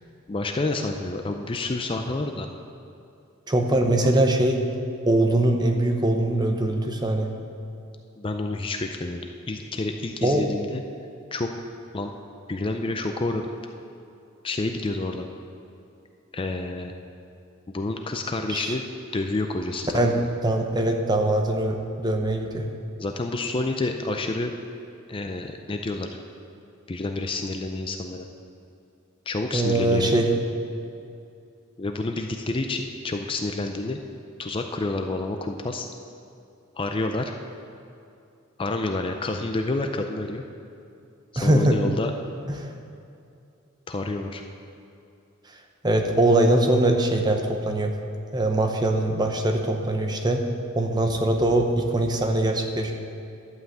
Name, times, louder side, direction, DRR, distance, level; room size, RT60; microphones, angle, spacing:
voice 1, 0.3-2.5 3.9-4.1 8.2-9.2 9.5-10.8 11.3-11.5 11.9-12.1 12.5-13.4 14.4-15.3 16.3-16.9 17.7-18.8 19.1-20.3 23.0-24.5 25.1-26.1 26.9-28.3 29.3-30.2 31.8-34.0 34.4-35.9 36.8-37.3 38.6-40.4 41.4-42.1 43.9-44.4, left 2 dB, 25° left, 5 dB, 0.4 m, -29 dB
voice 2, 3.5-4.6 5.1-7.3 10.2-10.4 18.5-18.7 19.9-20.2 20.4-22.7 29.5-30.3 41.4-41.8 42.5-42.7 45.8-47.9 48.3-50.5 50.7-52.9, right 1 dB, 20° right, 3 dB, 0.8 m, -22 dB
11.5 x 5.6 x 7.8 m, 2.6 s
head